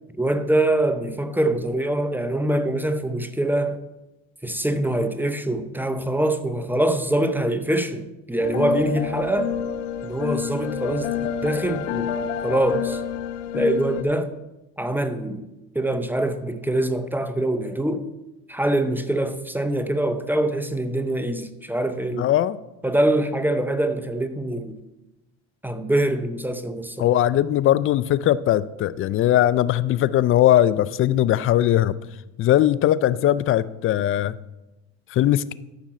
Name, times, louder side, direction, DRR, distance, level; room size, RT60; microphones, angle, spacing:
voice 1, 0.2-3.8 4.4-9.5 10.0-12.1 12.4-13.0 13.5-14.3 14.8-15.4 15.7-18.1 18.5-22.3 22.8-24.8 25.6-27.1, right 1 dB, 5° right, 0.7 m, -24 dB
sound 1, 8.4-14.0, left 8 dB, 90° left, 0.9 m, -28 dB
voice 2, 22.1-22.6 27.0-32.0 32.4-34.4 35.1-35.5, left 12 dB, 35° left, 0.4 m, -20 dB
13.5 x 5.9 x 4.2 m
supercardioid pair, 95°, 37 cm